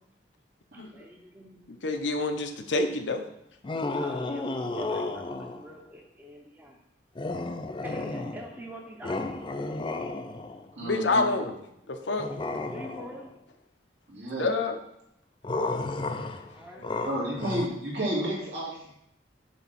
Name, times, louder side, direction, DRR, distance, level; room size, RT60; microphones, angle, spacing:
voice 1, 0.9-1.6 4.0-6.8 7.3-7.5 7.8-9.5 12.6-13.3 16.5-17.2, equal, 10° right, 1 dB, 0.8 m, -45 dB
voice 2, 1.8-3.2 10.8-11.6 11.9-12.3 14.4-14.7 16.7-16.9, left 3 dB, 80° left, 6 dB, 0.8 m, -27 dB
sound 1, 3.6-5.7 7.1-8.6 9.0-10.7 12.2-13.3 15.4-17.7, left 2 dB, 25° left, 0.4 m, -33 dB
voice 3, 10.8-11.3 14.1-14.5 17.0-18.9, right 1 dB, 70° right, -6 dB, 2.6 m, -31 dB
7.2 x 3.5 x 5.8 m, 0.77 s
head